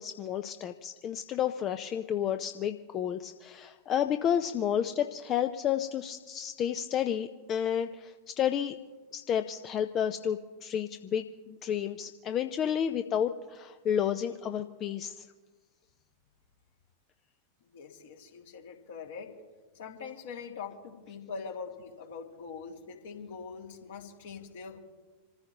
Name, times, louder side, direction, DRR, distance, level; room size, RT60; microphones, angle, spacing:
voice 1, 0.0-8.8 9.1-15.3, left 9 dB, 30° left, 8 dB, 0.7 m, -31 dB
voice 2, 17.6-19.3 19.7-24.8, left 5 dB, 60° left, 1 dB, 2.5 m, -43 dB
27.5 x 15.0 x 3.0 m, 1.3 s
figure-of-eight pair, 90°, 0 cm